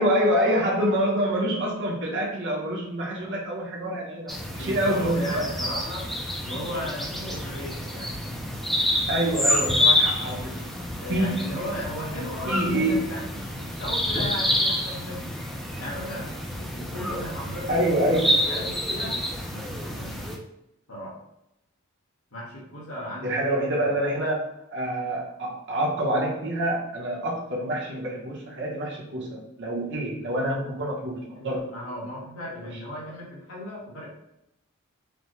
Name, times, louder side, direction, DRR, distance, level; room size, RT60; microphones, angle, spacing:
voice 1, 0.0-5.5 9.1-10.7 11.1-11.3 12.5-13.0 17.7-18.5 23.2-31.6, right 1 dB, 55° right, -3 dB, 0.9 m, -26 dB
sound 1, 4.3-20.4, left 1 dB, ahead, 0.4 m, -28 dB
voice 2, 4.6-6.1 6.4-8.1 11.0-15.4 15.8-17.8 18.2-19.2 19.5-20.3 20.9-21.1 22.3-23.5 31.3-34.1, equal, 70° left, -5 dB, 1.4 m, -36 dB
5.1 x 2.1 x 3.1 m, 0.82 s
head